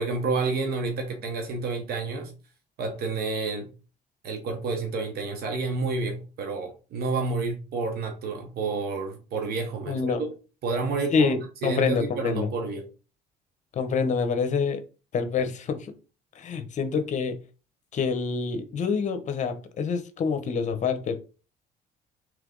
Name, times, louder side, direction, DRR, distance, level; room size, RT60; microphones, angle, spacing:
voice 1, 0.0-2.3 2.8-3.7 4.2-10.0 10.6-12.9, right 3 dB, 70° right, 0.9 m, -29 dB
voice 2, 9.9-10.2 11.1-12.5 13.7-14.8 15.1-15.9 16.4-17.4 17.9-21.1, left 5 dB, 45° left, 0.8 m, -26 dB
3.3 x 3.2 x 3.8 m
cardioid pair, 110°, 17 cm